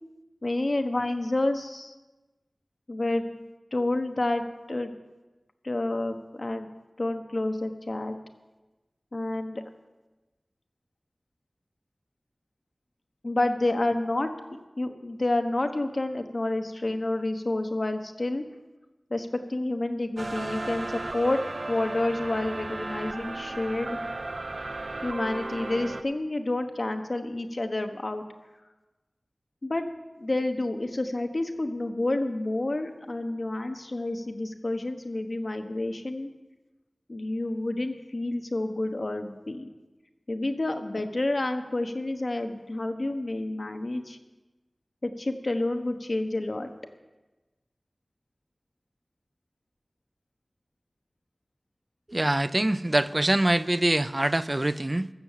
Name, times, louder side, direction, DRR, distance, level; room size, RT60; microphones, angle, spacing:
voice 1, 0.4-1.9 2.9-3.4 3.7-4.9 5.6-6.7 7.0-8.2 9.1-9.6 13.2-18.4 19.1-21.4 21.7-24.0 25.0-28.2 29.6-29.9 30.2-36.3 37.1-39.7 40.3-44.2 45.0-46.7, left 2 dB, 60° left, 6 dB, 1.1 m, -29 dB
sound 1, 20.2-26.0, right 2 dB, 70° right, 0.6 m, -35 dB
voice 2, 52.1-55.1, right 1 dB, 30° right, 15 dB, 0.4 m, -24 dB
15.0 x 6.8 x 7.4 m, 1.1 s
wide cardioid pair, 55°, 0 cm